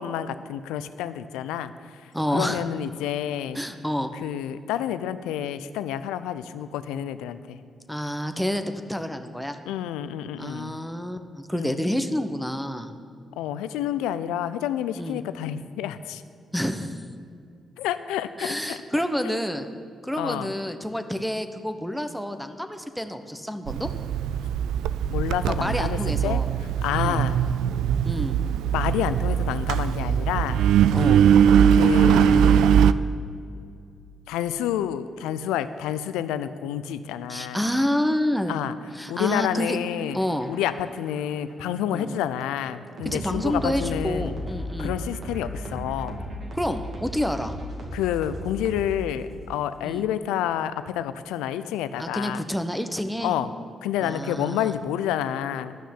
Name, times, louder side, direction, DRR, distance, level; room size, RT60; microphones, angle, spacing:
voice 1, 0.0-3.6 4.1-7.6 9.7-10.8 11.5-11.8 13.4-16.2 17.8-18.8 19.2-19.4 20.2-20.5 25.1-26.4 26.8-27.4 28.7-30.6 31.7-32.9 34.3-37.6 38.5-38.7 39.1-40.2 40.5-44.3 44.8-46.2 47.9-52.4 53.2-53.5 53.8-55.8, left 10 dB, 85° left, 13 dB, 0.5 m, -29 dB
voice 2, 2.1-2.6 3.5-4.1 7.9-9.6 10.4-12.9 14.9-15.2 16.5-17.0 18.4-19.7 20.0-23.9 25.5-26.5 26.9-27.2 28.0-28.4 30.9-31.2 37.3-38.6 38.9-39.8 40.1-40.5 41.9-42.1 43.0-44.9 46.5-47.5 49.8-50.1 52.0-53.3 54.0-54.7, equal, ahead, 8 dB, 1.1 m, -28 dB
Engine, 23.7-32.9, right 8 dB, 80° right, 0.3 m, -21 dB
sound 1, 39.6-49.3, equal, 60° right, 2.2 m, -36 dB
12.0 x 6.3 x 9.5 m, 2.4 s
hypercardioid pair, 45°, 0 cm